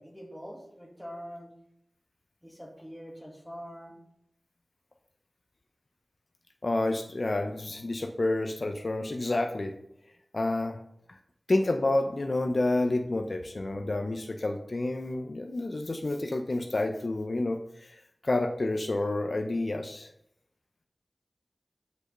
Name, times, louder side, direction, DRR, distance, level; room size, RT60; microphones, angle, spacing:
voice 1, 0.0-1.5 2.4-4.0, equal, ahead, 0 dB, 2.2 m, -44 dB
voice 2, 6.6-9.8 10.3-10.8 11.5-18.0 18.2-20.1, left 2 dB, 55° left, 5 dB, 0.7 m, -29 dB
6.2 x 5.3 x 6.5 m, 0.75 s
cardioid pair, 45°, 0 cm